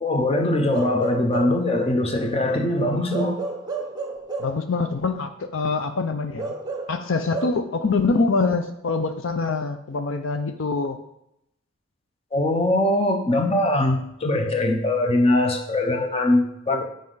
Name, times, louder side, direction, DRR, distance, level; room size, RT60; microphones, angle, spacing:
voice 1, 0.0-3.4 12.3-16.8, left 1 dB, 30° left, 4 dB, 0.8 m, -22 dB
Bark / Livestock farm animals working animals, 0.7-1.7 3.1-4.6 6.4-7.5, right 3 dB, 20° right, 0.8 m, -31 dB
voice 2, 4.4-6.5 6.9-11.0, left 4 dB, 70° left, 8 dB, 0.5 m, -24 dB
9.7 x 5.1 x 4.0 m, 0.81 s
head